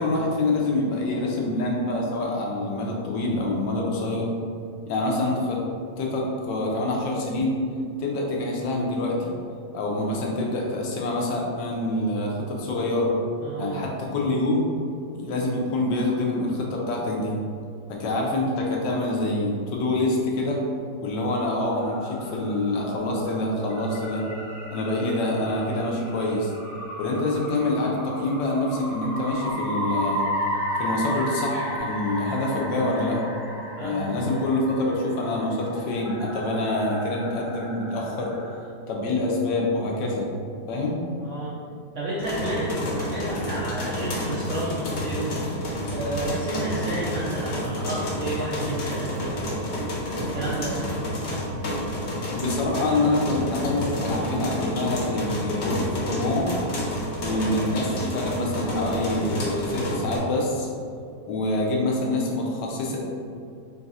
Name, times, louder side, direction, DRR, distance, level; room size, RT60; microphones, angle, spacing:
voice 1, 0.0-4.3 4.9-5.6 6.0-7.6 8.0-9.3 9.7-13.1 13.6-14.7 15.1-17.4 17.9-20.6 21.0-24.3 24.7-26.5 27.0-30.3 30.8-33.2 33.8-38.4 38.9-40.3 40.7-41.0 52.3-56.5 57.2-60.7 61.3-63.0, left 2 dB, 80° left, -1 dB, 1.3 m, -26 dB
voice 2, 13.4-13.8 33.8-34.5 41.2-41.5 41.9-45.4 45.9-50.8, right 1 dB, 75° right, -6 dB, 0.7 m, -31 dB
sound 1, 21.7-38.6, equal, ahead, 0.7 m, -34 dB
sound 2, 42.2-60.2, equal, 55° left, 0.8 m, -30 dB
4.0 x 2.4 x 4.0 m, 2.4 s
omnidirectional pair, 1.9 m